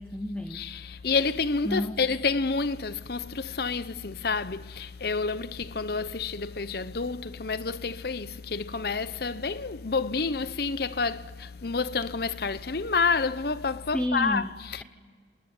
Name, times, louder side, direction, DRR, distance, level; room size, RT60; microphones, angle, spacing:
voice 1, 0.0-0.6 0.9-1.0 1.6-2.0 13.9-14.8, left 1 dB, 5° left, 0.9 m, -31 dB
voice 2, 0.5-14.8, left 4 dB, 55° left, 0.8 m, -29 dB
28.0 x 19.5 x 9.6 m
head